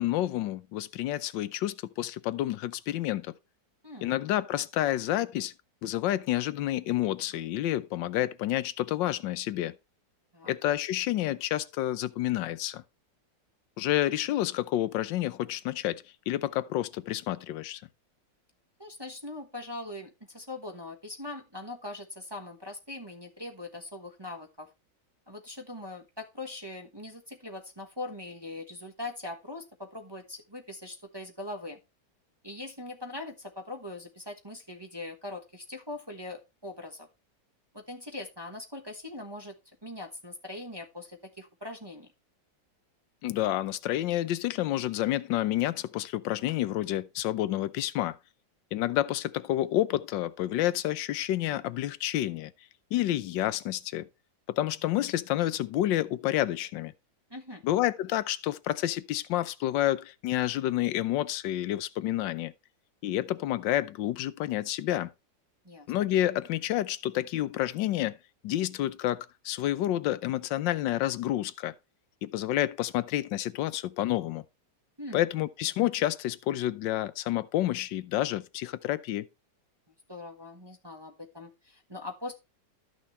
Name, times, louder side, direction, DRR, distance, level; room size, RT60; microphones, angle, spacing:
voice 1, 0.0-3.3 4.0-5.5 5.8-9.8 10.5-12.8 13.8-17.8 43.2-48.2 48.7-52.5 52.9-54.1 54.5-56.9 57.6-62.5 63.0-65.1 65.9-68.2 68.4-71.7 72.2-74.4 75.1-79.3, left 14 dB, 75° left, 1.4 m, -29 dB
voice 2, 18.8-24.7 25.3-31.8 32.4-37.1 37.7-42.1 57.3-57.6 65.6-65.9 75.0-75.2 80.1-82.3, left 2 dB, 15° right, 1.0 m, -41 dB
13.0 x 6.3 x 3.1 m
omnidirectional pair, 2.0 m